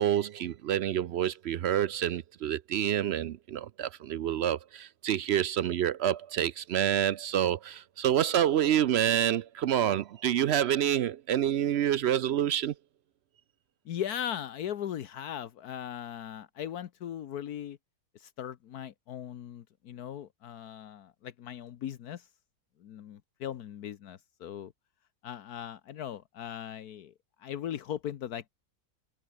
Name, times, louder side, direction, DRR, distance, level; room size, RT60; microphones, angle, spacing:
voice 1, 0.0-12.7, right 10 dB, 70° right, 0.6 m, -28 dB
voice 2, 13.8-17.8 18.1-22.3 22.8-24.7 25.2-27.1 27.4-28.5, left 10 dB, 75° left, 1.4 m, -38 dB
omnidirectional pair, 1.6 m